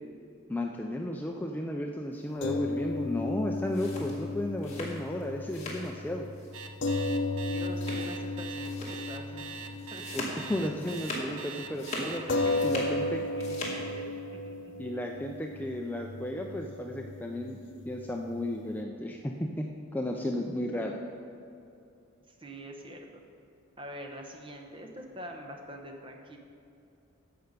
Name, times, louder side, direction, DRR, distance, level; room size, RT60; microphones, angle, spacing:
voice 1, 0.5-6.3 10.1-10.2 10.5-12.2 12.6-13.2 14.8-17.6 17.9-21.0, left 1 dB, 10° left, 1 dB, 0.4 m, -34 dB
sound 1, 2.4-10.9 11.2-11.4 12.3-18.8, left 2 dB, 60° left, 0.7 m, -34 dB
sound 2, 3.5-5.9 6.2-6.6 6.9-7.1 7.7-8.3 8.6-9.0 9.4-11.4 11.7-13.0 13.3-13.8, left 1 dB, 35° left, 2.0 m, -40 dB
Alarm, 6.5-12.7, right 6 dB, 80° right, 0.8 m, -42 dB
voice 2, 7.3-10.2 12.3-14.7 22.3-23.2 23.8-26.4, equal, 25° right, 2 dB, 1.0 m, -45 dB
14.5 x 5.7 x 5.2 m, 2.7 s
head